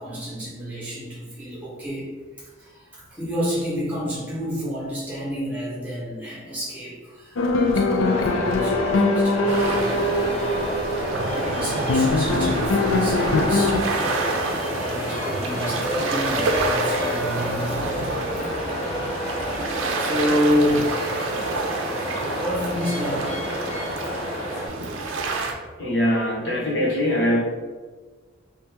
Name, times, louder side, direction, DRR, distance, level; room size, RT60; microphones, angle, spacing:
voice 1, 0.0-10.4 11.4-13.8 14.7-18.0 18.6-19.4 20.0-20.9 22.4-23.4, equal, 5° right, -7 dB, 1.2 m, -29 dB
sound 1, 7.4-13.8, left 2 dB, 80° left, 0.4 m, -22 dB
sound 2, 8.0-24.7, left 1 dB, 30° left, 0.6 m, -30 dB
sound 3, 9.5-25.5, right 3 dB, 75° right, 0.5 m, -29 dB
voice 2, 25.8-27.4, equal, 60° left, -5 dB, 0.9 m, -22 dB
2.9 x 2.9 x 3.4 m, 1.4 s
head